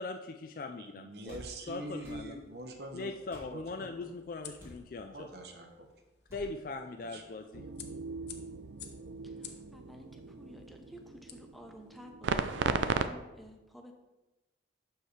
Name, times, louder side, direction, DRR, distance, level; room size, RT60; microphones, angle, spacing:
voice 1, 0.0-1.4 1.7-2.4 2.9-5.3 6.3-7.6, left 3 dB, 50° left, 5 dB, 0.4 m, -40 dB
voice 2, 0.8-3.2 3.5-3.9 5.0-5.9 7.0-7.2, right 2 dB, 60° right, 4 dB, 0.9 m, -44 dB
sound 1, 1.2-1.5 2.0-2.2 3.3-3.5 4.6-4.8 6.3-6.5, equal, 15° right, 2.8 m, -49 dB
sound 2, 2.2-12.1, left 9 dB, 65° left, 0.7 m, -55 dB
sound 3, 7.5-13.1, right 5 dB, 85° right, 0.4 m, -36 dB
voice 3, 9.2-14.0, equal, ahead, 3 dB, 0.7 m, -52 dB
11.5 x 4.7 x 3.2 m, 1.1 s
head